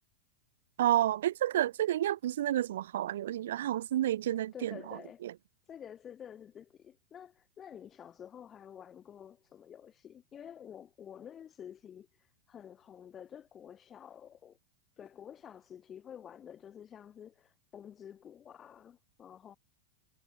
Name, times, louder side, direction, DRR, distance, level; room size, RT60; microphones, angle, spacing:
voice 1, 0.8-5.3, right 12 dB, 60° right, 0.3 m, -30 dB
voice 2, 4.5-5.3 5.7-14.6 15.0-19.6, left 9 dB, 25° left, 1.2 m, -50 dB
figure-of-eight pair, 90°, 0 cm